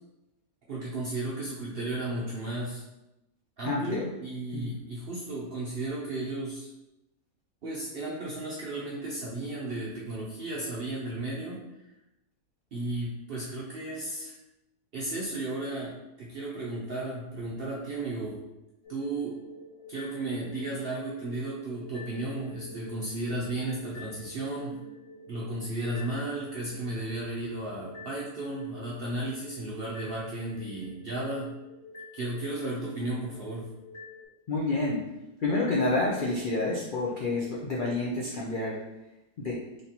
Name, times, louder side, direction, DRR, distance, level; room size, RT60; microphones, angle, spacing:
voice 1, 0.7-2.8 3.6-6.7 7.6-11.6 12.7-14.4 14.9-18.4 18.9-19.4 19.9-24.8 25.3-31.5 32.1-33.6, right 2 dB, 60° right, -4 dB, 0.6 m, -34 dB
voice 2, 3.6-4.0 4.5-4.7 34.5-35.0 35.4-38.8 39.4-39.6, left 2 dB, 80° left, -4 dB, 0.4 m, -28 dB
sound 1, 18.8-34.2, left 2 dB, 25° left, 0.6 m, -48 dB
3.3 x 2.8 x 4.0 m, 0.93 s
omnidirectional pair, 1.7 m